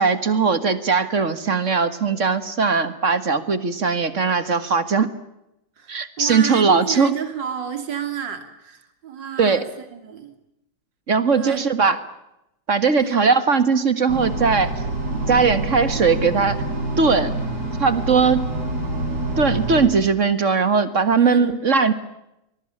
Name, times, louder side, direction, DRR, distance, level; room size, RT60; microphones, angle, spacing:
voice 1, 0.0-5.1 5.9-7.1 9.4-9.7 11.1-12.0 12.7-14.7 15.3-16.6 17.0-17.3 17.8-18.5 19.4-21.9, right 5 dB, 45° right, 12 dB, 1.9 m, -19 dB
voice 2, 5.8-10.4 11.3-11.7 13.0-13.3 21.2-21.5, right 8 dB, 75° right, 8 dB, 3.3 m, -31 dB
sound 1, 14.1-19.9, right 2 dB, 60° right, 6.4 m, -26 dB
24.5 x 21.5 x 8.7 m, 0.86 s
omnidirectional pair, 2.0 m